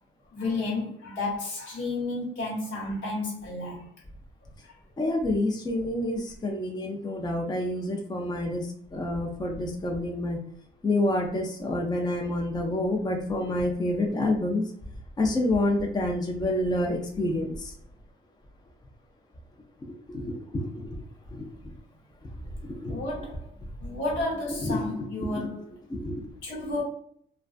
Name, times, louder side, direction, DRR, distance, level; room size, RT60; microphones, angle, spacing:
voice 1, 0.3-3.8 4.6-4.7 22.9-25.7 26.4-26.8, left 2 dB, 75° left, 1.2 m, -32 dB
voice 2, 5.0-10.4 10.8-14.6 15.2-17.7 20.1-20.9 21.3-21.5 22.6-23.0 24.6-25.0 25.9-26.3, left 1 dB, 20° left, 0.5 m, -28 dB
2.3 x 2.2 x 2.4 m
cardioid pair, 90°, 20 cm